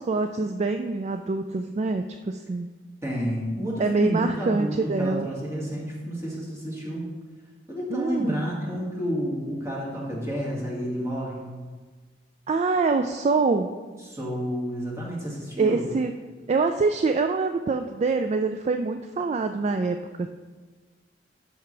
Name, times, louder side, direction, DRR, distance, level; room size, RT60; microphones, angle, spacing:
voice 1, 0.0-2.7 3.8-5.3 7.9-8.4 12.5-13.7 15.6-16.1 16.5-20.3, right 4 dB, 35° right, 7 dB, 0.3 m, -25 dB
voice 2, 3.0-7.1 7.7-11.6 14.0-15.9, equal, 15° right, -5 dB, 2.1 m, -30 dB
11.5 x 5.7 x 3.3 m, 1.4 s
head